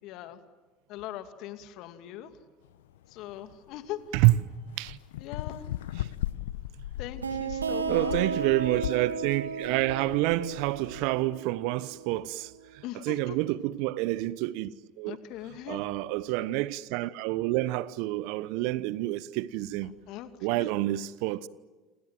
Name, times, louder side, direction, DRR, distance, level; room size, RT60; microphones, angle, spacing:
voice 1, 0.0-0.4 0.9-2.3 3.1-4.0 5.2-5.7 7.0-8.2 12.8-13.4 15.1-15.8 20.1-20.7, left 12 dB, 55° left, 2.5 m, -40 dB
sound 1, 2.6-11.1, left 13 dB, 75° left, 0.9 m, -38 dB
voice 2, 4.7-5.0 6.0-6.1 7.9-15.2 15.7-19.9 20.4-21.5, right 17 dB, 65° right, 1.0 m, -28 dB
sound 2, 7.2-12.6, right 6 dB, 90° right, 2.3 m, -34 dB
28.5 x 27.0 x 7.7 m
hypercardioid pair, 75°, 0 cm